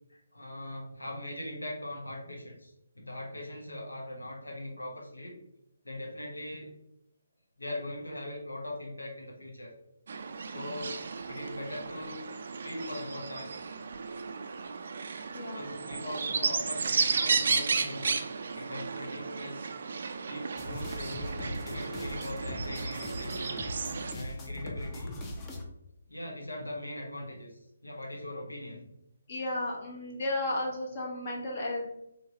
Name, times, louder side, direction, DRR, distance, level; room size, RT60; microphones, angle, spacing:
voice 1, 0.1-5.4 5.8-6.7 7.6-9.7 10.4-10.9 11.3-12.2 12.6-13.5 15.5-19.7 20.3-23.6 24.1-25.2 26.1-28.9, left 1 dB, 85° left, -1 dB, 1.0 m, -41 dB
sound 1, 10.1-24.1, right 5 dB, 55° right, 0.3 m, -34 dB
sound 2, 20.6-25.6, left 1 dB, 20° left, 0.6 m, -40 dB
voice 2, 29.3-31.9, left 1 dB, 45° left, -1 dB, 1.0 m, -33 dB
3.9 x 3.2 x 2.7 m, 0.82 s
figure-of-eight pair, 145°, 0 cm